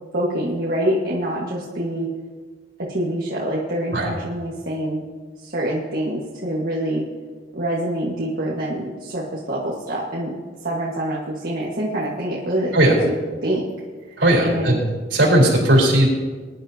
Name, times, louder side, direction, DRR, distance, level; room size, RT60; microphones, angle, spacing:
voice 1, 0.1-2.1 2.9-5.0 5.4-7.0 7.5-10.3 10.6-13.1 13.4-13.7 14.4-14.8, right 1 dB, 50° right, -5 dB, 1.7 m, -25 dB
voice 2, 14.2-14.8 15.1-16.1, right 1 dB, 70° right, -2 dB, 4.1 m, -16 dB
21.5 x 10.5 x 2.9 m, 1.4 s
head